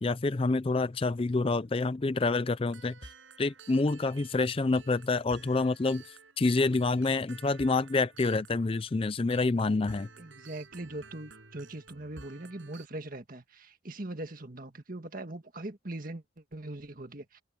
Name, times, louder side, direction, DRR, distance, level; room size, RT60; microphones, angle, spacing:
voice 1, 0.0-2.9 3.4-10.1, left 3 dB, 30° left, 0.4 m, -27 dB
sound 1, 2.7-12.9, right 4 dB, 75° right, 7.0 m, -53 dB
voice 2, 10.2-17.4, right 1 dB, 45° right, 1.8 m, -41 dB
head